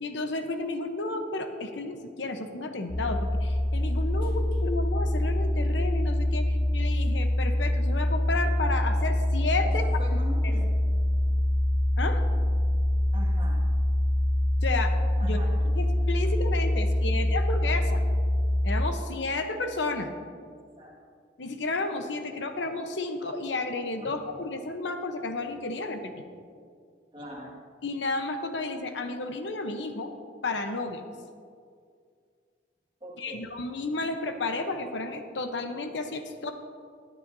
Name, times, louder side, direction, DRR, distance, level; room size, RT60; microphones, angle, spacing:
voice 1, 0.0-6.5 6.7-9.8 10.4-10.5 12.0-12.2 14.6-14.9 15.2-15.4 15.7-18.0 18.6-20.1 21.4-26.1 27.8-30.1 30.4-31.0 33.2-36.5, left 3 dB, 80° left, 7 dB, 0.9 m, -32 dB
sound 1, 2.9-18.9, left 1 dB, 30° left, 0.5 m, -25 dB
voice 2, 4.2-4.6 9.6-10.7 11.3-11.4 13.1-13.6 15.2-15.5 17.1-17.2 20.4-21.0 27.1-27.6 33.0-33.5, equal, 25° right, -2 dB, 1.8 m, -43 dB
17.0 x 10.0 x 2.7 m, 2.2 s
head